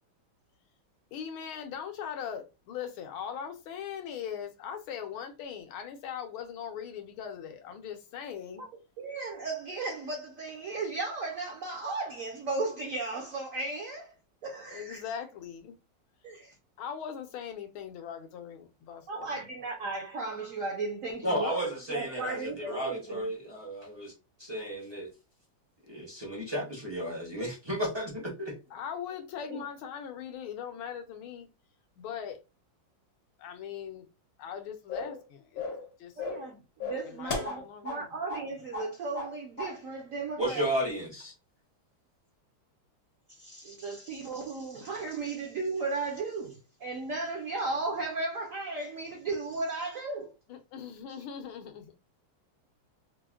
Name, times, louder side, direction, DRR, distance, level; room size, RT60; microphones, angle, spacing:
voice 1, 1.1-8.6 14.7-15.8 16.8-19.3 28.7-31.5 32.0-32.4 33.4-34.1 34.4-35.6 36.0-36.1 37.0-38.1 50.5-52.0, left 8 dB, 80° left, 1.6 m, -40 dB
voice 2, 9.0-14.1 14.4-15.0 16.2-16.5 19.1-23.3 29.5-29.6 36.2-40.9 43.3-50.3, right 3 dB, 70° right, 0.8 m, -35 dB
voice 3, 21.2-24.1 24.4-25.1 25.9-28.6 40.4-41.3, equal, 40° right, 0.3 m, -33 dB
sound 1, 34.9-35.2 35.6-35.9 36.2-36.5 36.8-38.0 38.3-38.5 38.7-39.3 39.6-39.8, left 3 dB, 55° left, 0.7 m, -35 dB
4.4 x 2.1 x 2.3 m
omnidirectional pair, 2.3 m